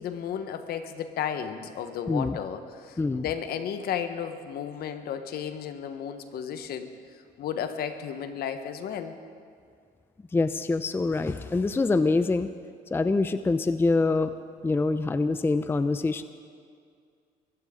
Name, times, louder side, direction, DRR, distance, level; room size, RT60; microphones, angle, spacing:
voice 1, 0.0-6.9 7.4-9.2, left 8 dB, 65° left, 9 dB, 1.2 m, -33 dB
voice 2, 2.1-2.4 3.0-3.2 10.3-12.5 12.9-14.3 14.6-16.2, left 3 dB, 15° left, 12 dB, 0.5 m, -25 dB
22.5 x 15.0 x 3.8 m, 2.2 s
cardioid pair, 110°, 17 cm